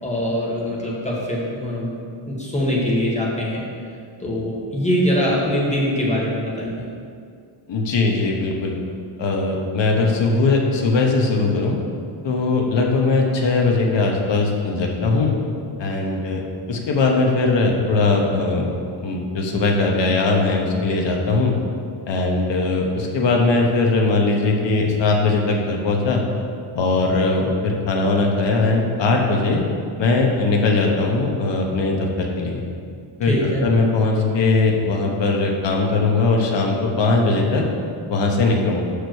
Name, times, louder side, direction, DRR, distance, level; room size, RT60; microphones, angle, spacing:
voice 1, 0.0-2.0 2.3-3.6 4.2-6.8 33.2-33.6, equal, 15° left, -5 dB, 1.5 m, -23 dB
voice 2, 7.7-8.8 9.2-11.8 12.2-15.3 15.8-16.4 16.7-18.7 19.0-21.5 22.1-26.2 26.7-29.6 30.0-32.6 33.2-33.3 33.6-37.6 38.1-38.8, left 3 dB, 60° left, 0 dB, 1.2 m, -20 dB
5.9 x 5.0 x 6.2 m, 2.3 s
wide cardioid pair, 130°, 50 cm